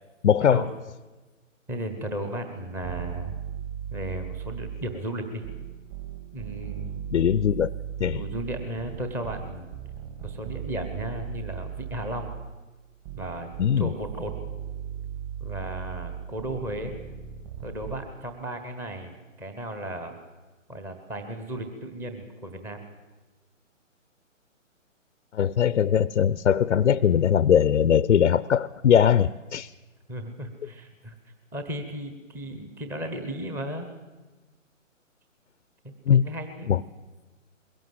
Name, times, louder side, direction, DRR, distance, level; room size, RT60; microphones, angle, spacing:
voice 1, 0.2-0.6 7.1-7.7 8.0-8.2 13.6-13.9 25.3-29.7 36.1-36.3 36.7-36.8, left 8 dB, 70° left, 0.7 m, -21 dB
voice 2, 1.7-3.3 3.9-5.5 6.3-7.0 8.1-9.7 10.2-12.3 13.1-13.5 13.8-14.3 15.4-17.0 17.6-20.2 20.7-22.8 30.1-31.2 31.5-33.9 35.8-36.7, right 1 dB, 5° right, 0.9 m, -35 dB
sound 1, 2.8-5.0 5.4-12.6 13.1-18.1, right 9 dB, 30° right, 2.6 m, -37 dB
22.0 x 17.0 x 7.8 m
hypercardioid pair, 150°, 39 cm